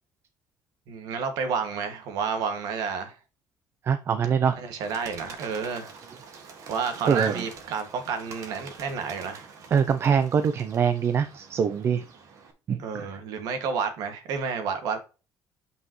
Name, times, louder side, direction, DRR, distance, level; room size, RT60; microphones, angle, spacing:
voice 1, 0.9-3.2 4.5-5.9 6.7-9.5 12.8-15.0, right 6 dB, 80° right, 2.0 m, -30 dB
voice 2, 3.9-4.5 7.1-7.4 9.7-12.0 12.7-13.1, right 7 dB, 40° right, 0.6 m, -24 dB
Bird, 4.8-12.5, right 5 dB, 55° right, 1.9 m, -46 dB
9.0 x 5.5 x 3.1 m
cardioid pair, 135°, 6 cm